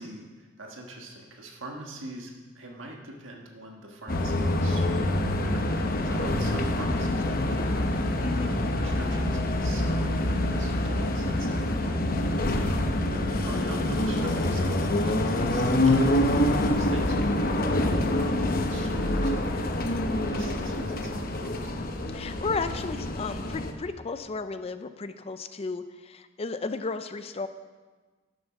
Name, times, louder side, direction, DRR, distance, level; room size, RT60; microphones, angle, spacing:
voice 1, 0.0-16.1 16.4-21.8, right 1 dB, 80° right, 1 dB, 1.5 m, -44 dB
sound 1, 4.1-23.7, left 1 dB, 50° left, 0.8 m, -26 dB
voice 2, 8.2-8.5 19.5-19.6 22.1-27.5, left 4 dB, 30° left, 10 dB, 0.4 m, -34 dB
11.5 x 7.1 x 5.8 m, 1.3 s
head